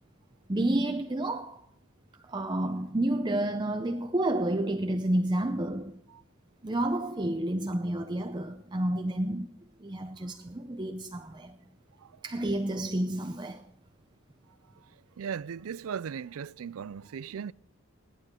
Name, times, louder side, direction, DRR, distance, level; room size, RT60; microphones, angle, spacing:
voice 1, 0.5-1.7 2.3-6.0 6.6-9.5 9.8-11.6 12.2-13.7, right 1 dB, 20° right, 0.6 m, -30 dB
voice 2, 15.2-17.5, right 7 dB, 70° right, 0.4 m, -37 dB
17.0 x 12.0 x 3.7 m
head